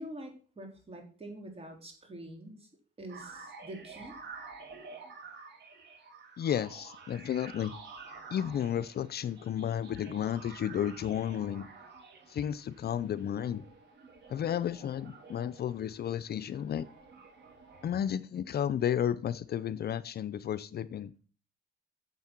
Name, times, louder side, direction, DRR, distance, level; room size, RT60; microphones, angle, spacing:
voice 1, 0.0-2.7 3.0-4.1, right 1 dB, 30° right, 2 dB, 3.8 m, -45 dB
sound 1, 3.1-18.1, right 4 dB, 60° right, 3.5 m, -50 dB
voice 2, 6.4-7.7 8.3-11.7 12.3-13.6 14.3-16.9 17.8-21.1, left 9 dB, 55° left, 15 dB, 0.6 m, -32 dB
9.5 x 7.3 x 6.0 m, 0.41 s
cardioid pair, 90°, 20 cm